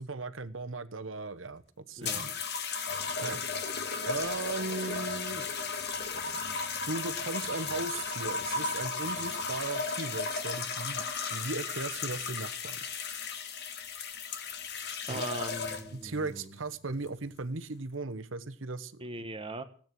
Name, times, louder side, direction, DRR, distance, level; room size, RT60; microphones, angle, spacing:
voice 1, 0.0-2.3 3.2-3.4 4.0-5.5 6.9-12.8 15.1-15.2 15.9-19.3, right 3 dB, 90° right, 11 dB, 1.2 m, -37 dB
sound 1, 2.0-16.1 16.9-17.3, left 5 dB, 60° left, 1.9 m, -35 dB
voice 2, 15.1-16.6 19.0-19.6, right 2 dB, 30° right, 9 dB, 1.4 m, -40 dB
16.5 x 8.9 x 7.6 m, 0.43 s
head